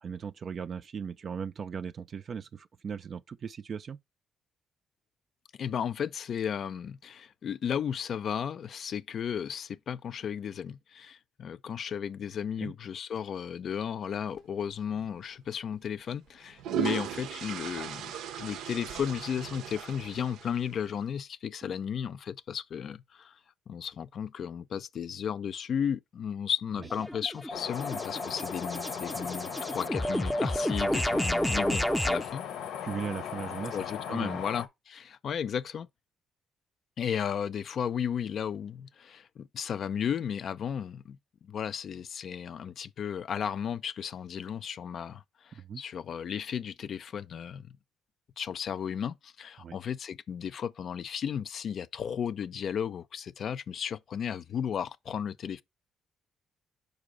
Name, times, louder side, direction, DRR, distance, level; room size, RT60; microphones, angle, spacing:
voice 1, 0.0-4.0 12.6-12.7 26.8-26.9 32.8-34.4 45.5-45.8 49.6-49.8, right 6 dB, 50° right, 0.3 m, -38 dB
voice 2, 5.6-23.3 23.7-32.4 33.7-35.9 37.0-47.7 48.4-55.6, left 8 dB, 60° left, 0.5 m, -34 dB
sound 1, 14.9-15.1 16.3-20.9, right 9 dB, 90° right, 0.6 m, -37 dB
sound 2, 26.8-32.3, equal, ahead, 0.5 m, -31 dB
sound 3, 27.5-34.7, left 9 dB, 85° left, 0.8 m, -38 dB
5.3 x 4.7 x 4.9 m
cardioid pair, 90°, 0 cm